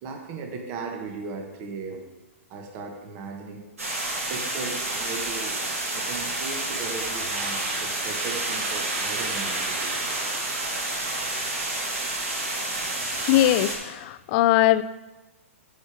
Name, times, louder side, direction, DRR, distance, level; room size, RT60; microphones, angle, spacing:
voice 1, 0.0-2.1 2.5-3.7 4.1-5.7 5.9-10.0 10.4-10.6 12.4-12.5 13.0-13.1, right 4 dB, 35° right, 3 dB, 1.3 m, -37 dB
sound 1, 3.8-13.8, right 2 dB, 85° right, 2.7 m, -30 dB
sound 2, 5.1-11.6, right 3 dB, 55° right, 1.9 m, -37 dB
voice 2, 13.2-14.8, left 14 dB, 40° left, 15 dB, 0.4 m, -20 dB
9.3 x 5.1 x 4.8 m, 1.1 s
hypercardioid pair, 130°, 8 cm